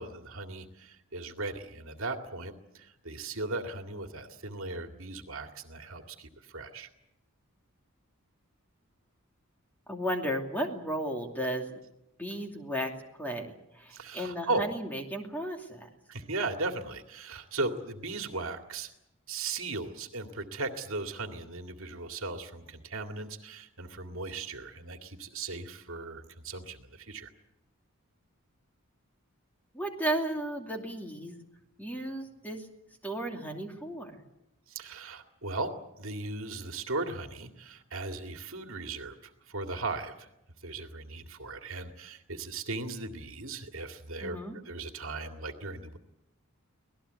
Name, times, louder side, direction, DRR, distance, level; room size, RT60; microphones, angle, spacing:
voice 1, 0.0-6.9 13.9-14.7 16.1-18.9 19.3-27.3 34.7-40.3 40.6-44.4 44.7-46.0, right 3 dB, 65° right, 5 dB, 2.2 m, -37 dB
voice 2, 9.9-11.7 12.2-12.9 13.2-15.9 29.7-31.3 31.8-32.7 33.0-34.2 44.2-44.6, right 1 dB, 5° left, 2 dB, 2.6 m, -34 dB
25.5 x 18.5 x 8.2 m, 0.86 s
head